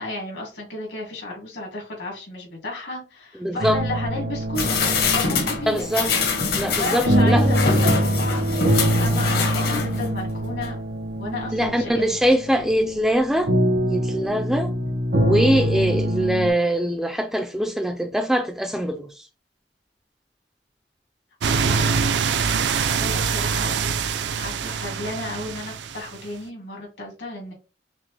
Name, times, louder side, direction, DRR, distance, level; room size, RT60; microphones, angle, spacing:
voice 1, 0.0-5.8 6.8-8.4 9.0-10.8 11.2-12.2 21.5-23.9 24.4-27.5, left 2 dB, 75° left, 2.2 m, -33 dB
voice 2, 3.4-3.8 5.7-6.1 6.6-7.5 11.5-13.5 13.8-14.7 15.1-19.2, equal, ahead, 0.3 m, -22 dB
sound 1, 3.6-16.5, equal, 85° right, 1.6 m, -24 dB
sound 2, 4.6-10.2 10.6-10.7, left 4 dB, 55° left, 0.9 m, -25 dB
sound 3, 21.4-26.2, right 6 dB, 70° right, 0.4 m, -24 dB
5.9 x 2.1 x 3.2 m
head